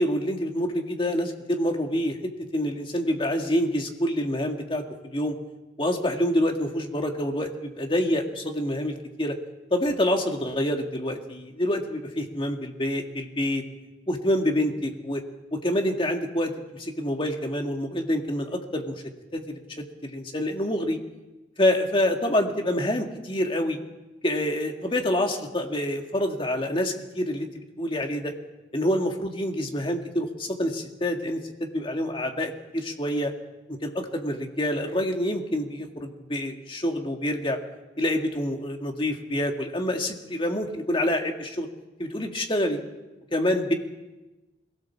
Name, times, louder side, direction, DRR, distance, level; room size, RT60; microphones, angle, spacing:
voice 1, 0.0-5.4 5.8-9.4 9.7-13.6 14.1-15.2 15.5-19.0 19.3-21.0 21.6-23.8 24.2-28.3 28.7-33.3 33.7-37.6 38.0-41.7 42.0-42.8 43.3-43.7, left 1 dB, 30° left, 3 dB, 1.9 m, -27 dB
22.5 x 17.0 x 7.2 m, 1.1 s
head